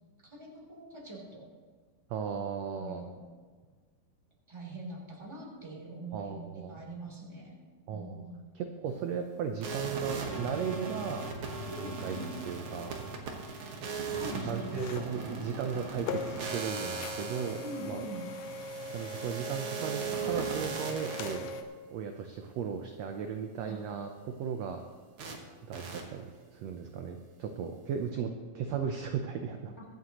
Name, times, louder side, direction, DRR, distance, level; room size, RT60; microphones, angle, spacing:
voice 1, 0.2-1.5 2.7-3.2 4.5-7.5 7.9-8.3 11.7-12.2 14.0-14.7 17.6-18.3 23.7-23.8 29.8-29.9, right 2 dB, 10° right, -3 dB, 3.0 m, -43 dB
voice 2, 2.1-3.0 6.1-6.8 7.9-8.3 8.6-11.2 11.8-12.9 14.5-18.1 18.9-21.5 21.9-24.8 25.7-29.8, right 7 dB, 70° right, 5 dB, 1.6 m, -36 dB
sound 1, 9.6-21.3 25.2-25.4 25.7-26.0, right 5 dB, 50° right, 1.8 m, -38 dB
sound 2, 14.8-21.6, left 2 dB, 70° left, 1.9 m, -40 dB
23.5 x 9.6 x 3.0 m, 1.5 s
omnidirectional pair, 3.7 m